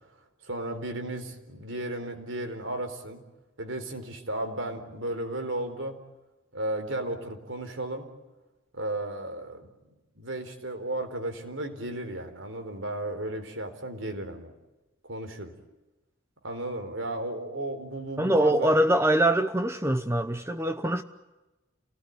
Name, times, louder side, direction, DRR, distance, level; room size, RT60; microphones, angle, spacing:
voice 1, 0.4-3.2 3.6-6.0 6.5-8.1 8.7-9.7 10.1-14.5 15.0-15.5 16.4-18.7, right 1 dB, 65° right, 4.2 m, -34 dB
voice 2, 18.2-21.0, right 1 dB, 15° right, 0.9 m, -23 dB
29.5 x 19.0 x 9.5 m
head